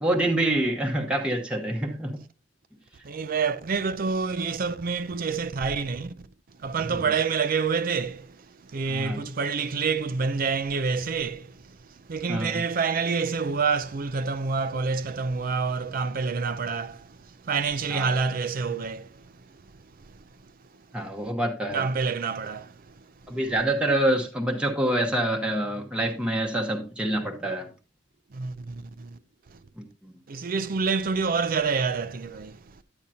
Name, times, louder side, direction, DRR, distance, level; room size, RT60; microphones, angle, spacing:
voice 1, 0.0-2.2 6.9-7.1 8.9-9.2 12.3-12.6 17.9-18.2 20.9-21.9 23.3-27.7 29.8-30.1, right 1 dB, 5° right, 0.9 m, -26 dB
voice 2, 3.0-6.3 6.6-11.8 12.1-19.4 20.0-20.1 21.2-21.3 21.7-23.4 28.3-29.2 29.5-29.6 30.3-32.6, right 5 dB, 50° right, 0.5 m, -28 dB
9.7 x 8.9 x 2.7 m
head